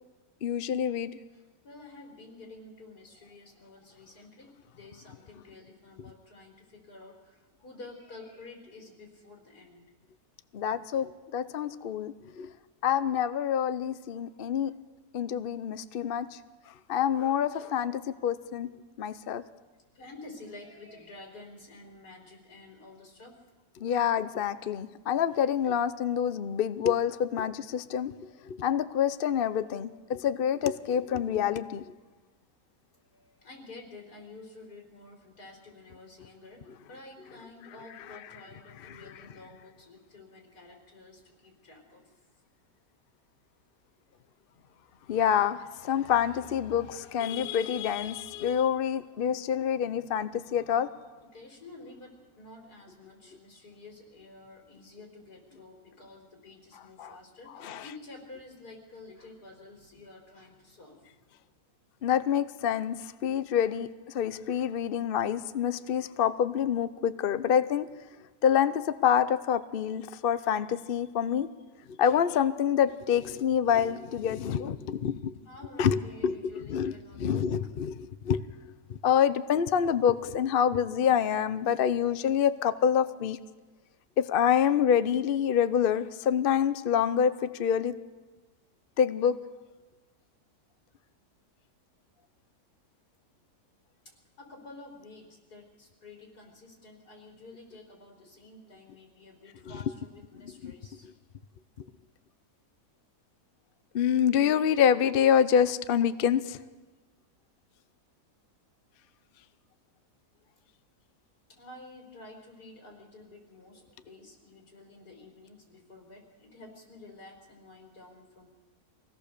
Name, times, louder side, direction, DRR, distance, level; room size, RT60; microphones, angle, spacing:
voice 1, 0.4-1.1 10.5-12.5 12.8-14.7 15.1-16.4 16.9-18.7 19.0-19.4 23.8-28.1 28.4-31.8 45.1-50.9 57.0-57.1 57.6-57.8 62.0-63.9 64.1-67.9 68.4-71.5 72.0-75.3 75.8-76.3 76.7-78.4 79.0-83.4 84.2-87.9 89.0-89.4 100.6-100.7 103.9-106.6, left 8 dB, 50° left, 12 dB, 0.7 m, -27 dB
voice 2, 1.3-9.8 19.9-23.4 32.9-42.0 51.2-61.2 75.4-77.5 94.0-101.1 111.5-118.5, left 2 dB, 90° left, 1 dB, 4.5 m, -50 dB
24.0 x 17.0 x 6.7 m, 1.3 s
omnidirectional pair, 1.6 m